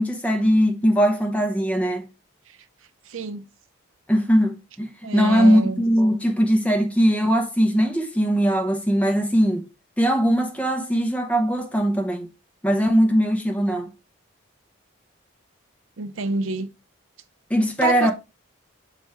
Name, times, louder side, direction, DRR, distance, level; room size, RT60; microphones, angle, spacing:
voice 1, 0.0-2.1 4.1-9.7 10.0-12.3 12.6-13.9 17.5-18.1, equal, 5° left, 0.8 m, -20 dB
voice 2, 3.1-3.4 5.0-5.8 16.0-16.7 17.8-18.1, right 4 dB, 75° right, 0.6 m, -26 dB
7.0 x 4.3 x 3.5 m
head